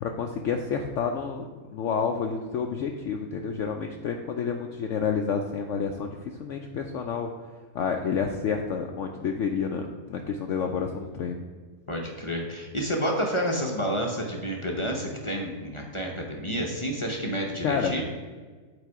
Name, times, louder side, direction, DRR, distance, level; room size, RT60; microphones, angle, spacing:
voice 1, 0.0-7.3 7.7-11.4 17.6-17.9, left 6 dB, 70° left, 3 dB, 0.8 m, -29 dB
voice 2, 11.9-18.0, equal, 30° left, 0 dB, 0.6 m, -29 dB
8.0 x 4.3 x 4.7 m, 1.4 s
omnidirectional pair, 1.6 m